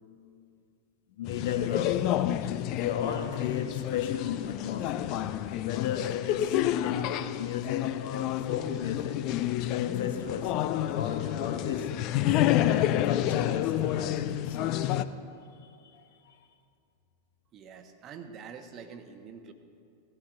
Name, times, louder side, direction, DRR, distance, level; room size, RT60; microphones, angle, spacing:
voice 1, 1.2-5.3 5.6-12.0 12.3-15.0 15.6-16.4, left 8 dB, 55° left, 1.1 m, -35 dB
sound 1, 1.3-15.0, left 12 dB, 40° left, 0.4 m, -29 dB
voice 2, 17.5-19.5, right 6 dB, 35° right, 1.0 m, -45 dB
18.0 x 14.0 x 2.5 m
figure-of-eight pair, 90°, 0 cm